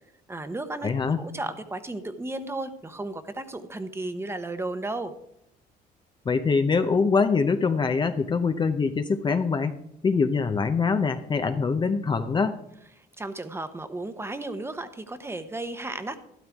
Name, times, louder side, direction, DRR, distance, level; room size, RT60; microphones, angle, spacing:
voice 1, 0.3-5.1 13.0-16.2, right 2 dB, 15° right, 10 dB, 1.0 m, -34 dB
voice 2, 0.8-1.2 6.3-9.8 10.0-12.6, left 5 dB, 25° left, 9 dB, 0.7 m, -24 dB
12.5 x 12.0 x 3.6 m, 0.80 s
cardioid pair, 110°, 17 cm